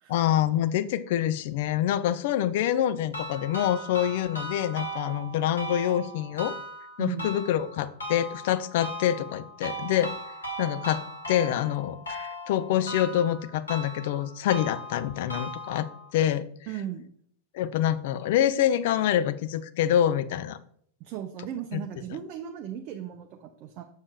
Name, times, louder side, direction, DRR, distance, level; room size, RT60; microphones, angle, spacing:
voice 1, 0.1-6.6 7.0-10.1 10.6-16.4 17.5-20.6 21.7-21.8, left 11 dB, 50° left, 15 dB, 0.4 m, -26 dB
sound 1, 3.1-16.1, equal, 75° left, 1.5 m, -38 dB
voice 2, 7.0-7.3 16.7-17.2 21.0-23.8, right 10 dB, 40° right, 4 dB, 0.5 m, -36 dB
7.0 x 6.3 x 2.2 m, 0.65 s
figure-of-eight pair, 90°, 0 cm